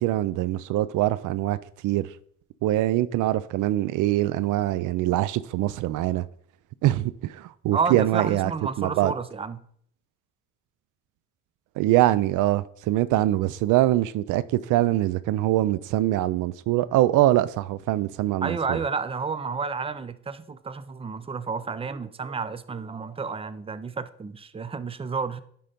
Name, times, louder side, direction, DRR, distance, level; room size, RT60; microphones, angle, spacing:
voice 1, 0.0-1.6 1.8-2.1 2.6-6.3 6.8-8.5 8.8-9.1 11.8-18.8, right 15 dB, 85° right, 0.5 m, -23 dB
voice 2, 7.7-9.6 18.4-25.4, right 5 dB, 20° right, 0.5 m, -30 dB
10.0 x 3.8 x 5.2 m
cardioid pair, 90°, 30 cm